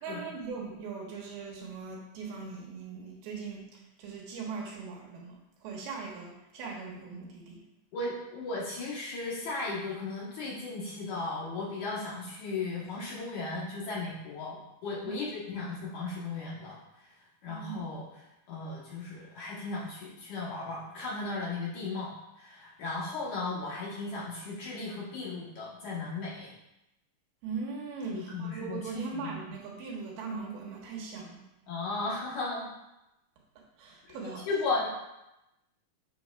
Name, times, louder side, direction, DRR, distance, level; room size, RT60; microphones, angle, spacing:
voice 1, 0.0-7.6 15.0-15.2 17.5-17.8 27.4-31.4 33.8-34.4, right 4 dB, 80° right, -3 dB, 3.3 m, -40 dB
voice 2, 7.9-16.8 17.4-18.0 18.5-22.1 22.4-26.5 28.0-29.3 31.7-32.7 34.5-34.9, left 3 dB, 65° left, -5 dB, 2.3 m, -36 dB
7.8 x 6.9 x 2.3 m, 0.91 s
omnidirectional pair, 4.4 m